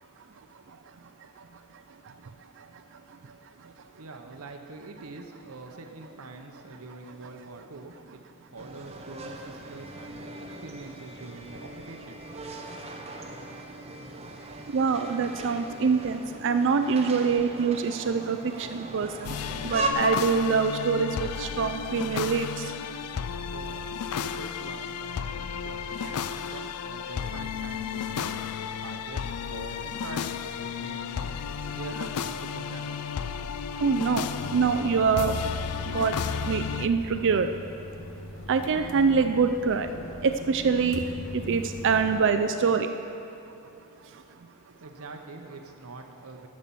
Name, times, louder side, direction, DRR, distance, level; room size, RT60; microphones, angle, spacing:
voice 1, 4.0-8.2 8.5-12.2 23.5-33.0 44.8-46.5, right 3 dB, 75° right, 4 dB, 0.9 m, -44 dB
sound 1, 8.6-19.9, right 3 dB, 30° right, 0.9 m, -39 dB
voice 2, 14.7-19.4 19.6-22.7 33.8-35.4 35.9-36.1 36.5-37.5 38.5-39.9 40.2-41.0 41.3-42.9 44.1-44.2, right 5 dB, 55° right, 8 dB, 0.4 m, -25 dB
sound 2, 19.2-36.9, left 7 dB, 85° left, 0.4 m, -33 dB
sound 3, 34.4-42.2, left 1 dB, 65° left, 1.0 m, -40 dB
13.0 x 7.5 x 7.0 m, 2.8 s
head